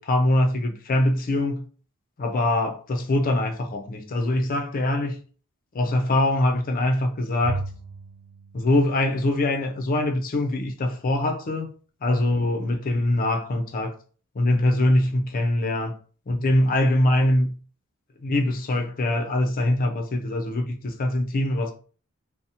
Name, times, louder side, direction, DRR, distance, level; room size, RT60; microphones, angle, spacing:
voice 1, 0.0-1.7 2.2-5.2 5.7-7.6 8.5-11.7 12.0-13.9 14.4-15.9 16.3-17.5 18.2-21.7, left 1 dB, 40° left, 0.4 m, -23 dB
Bowed string instrument, 7.4-9.8, right 3 dB, 75° right, 0.4 m, -37 dB
2.7 x 2.0 x 2.7 m
head